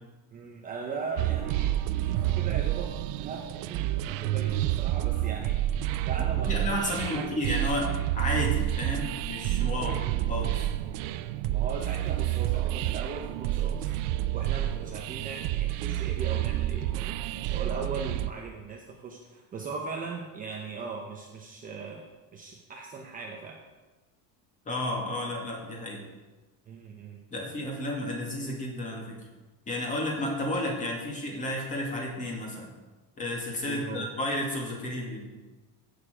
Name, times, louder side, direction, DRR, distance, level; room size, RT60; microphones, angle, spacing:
voice 1, 0.3-5.6 6.1-7.3 9.7-11.2 11.5-13.9 14.3-22.1 22.3-23.6 26.7-27.5 33.6-34.1, right 4 dB, 20° right, 1 dB, 0.7 m, -39 dB
sound 1, 1.2-18.3, right 14 dB, 50° right, 0.5 m, -29 dB
voice 2, 6.5-9.9 10.3-10.7 24.7-26.0 27.3-29.2 29.7-32.7 33.2-35.3, left 1 dB, 20° left, 0 dB, 2.1 m, -32 dB
16.0 x 6.8 x 5.0 m, 1.2 s
cardioid pair, 180°, 42 cm